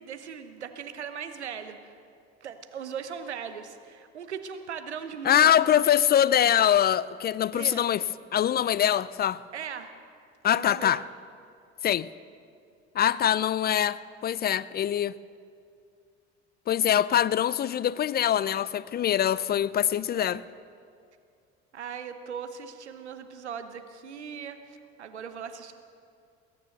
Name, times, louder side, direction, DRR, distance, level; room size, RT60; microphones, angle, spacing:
voice 1, 0.0-2.0 2.4-5.8 7.5-7.8 9.5-9.9 10.5-11.0 20.1-20.4 21.7-24.6 25.0-25.7, right 7 dB, 85° right, 1.0 m, -39 dB
voice 2, 5.2-8.0 8.3-9.4 10.4-11.0 11.8-12.1 13.0-15.1 16.7-20.4, left 10 dB, 30° left, 0.4 m, -23 dB
21.0 x 9.8 x 6.6 m
figure-of-eight pair, 60°, 33 cm